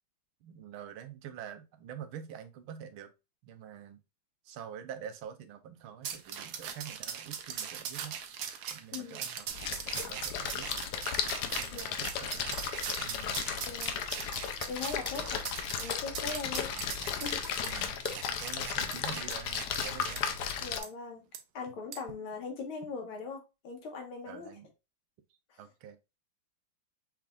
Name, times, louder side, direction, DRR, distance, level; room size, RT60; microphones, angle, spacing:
voice 1, 0.4-3.1 3.4-4.0 4.4-8.2 8.7-10.9 11.6-12.6 13.0-13.4 15.2-15.3 16.5-17.1 17.6-20.3 20.5-20.6 24.3-24.7 25.6-26.0, right 8 dB, 90° right, 8 dB, 1.6 m, -47 dB
sound 1, 6.0-20.2 20.8-20.9 21.3-21.4 21.9-22.1, right 8 dB, 65° right, 1.0 m, -40 dB
Splash splatter, 9.5-20.8, left 7 dB, 65° left, 1.1 m, -35 dB
voice 2, 13.6-14.0 14.7-16.7 17.2-17.4 20.6-21.2 21.5-24.5 25.5-25.6, left 4 dB, 85° left, 2 dB, 2.2 m, -40 dB
5.8 x 3.5 x 2.4 m, 0.26 s
omnidirectional pair, 2.2 m